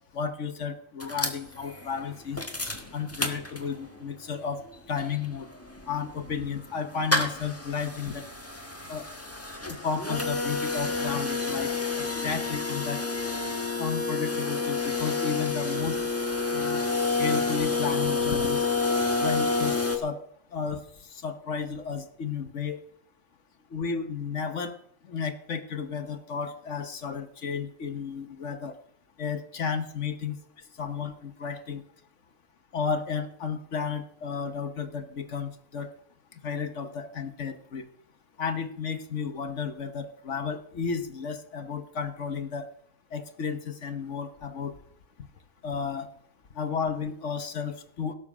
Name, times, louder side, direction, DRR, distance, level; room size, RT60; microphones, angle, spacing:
voice 1, 0.1-2.4 2.9-4.6 4.9-5.5 5.9-8.3 8.9-9.1 9.6-13.0 13.8-16.0 16.5-16.8 17.2-18.6 19.2-20.2 20.5-20.8 21.1-22.8 23.7-24.8 25.1-28.8 29.2-30.4 30.8-31.8 32.7-35.9 36.4-37.9 38.4-42.7 43.1-44.7 45.6-46.1 46.5-48.1, left 6 dB, 65° left, 8 dB, 1.3 m, -33 dB
sound 1, 1.0-4.0 4.4-4.5 4.6-20.0, left 3 dB, 10° left, 1.5 m, -29 dB
17.5 x 7.4 x 6.0 m, 0.68 s
omnidirectional pair, 1.4 m